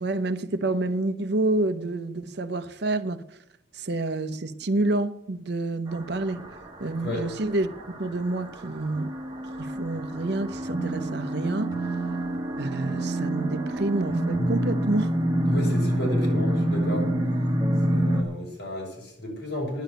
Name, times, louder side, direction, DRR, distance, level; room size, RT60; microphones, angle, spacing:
voice 1, 0.0-3.4 3.7-7.7 8.0-9.1 9.6-11.8 12.6-15.2, right 2 dB, 65° right, 0.8 m, -28 dB
sound 1, 5.9-18.2, right 1 dB, 25° right, 1.7 m, -27 dB
voice 2, 15.5-17.1 17.9-19.8, left 1 dB, 65° left, 6.2 m, -32 dB
10.5 x 7.1 x 9.2 m
head